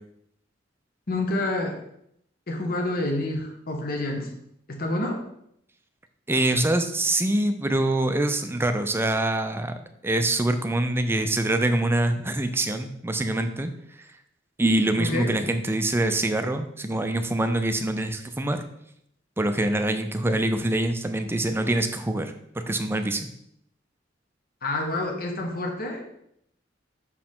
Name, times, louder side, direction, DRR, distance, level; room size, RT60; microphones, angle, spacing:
voice 1, 1.1-1.8 2.5-4.3 4.7-5.2 15.0-15.3 24.6-26.2, left 2 dB, 55° left, 2 dB, 1.1 m, -28 dB
voice 2, 6.3-9.7 10.0-13.7 14.6-18.6 19.4-22.3 22.7-23.3, right 1 dB, 15° right, 8 dB, 0.4 m, -24 dB
6.3 x 4.8 x 3.6 m, 0.74 s
head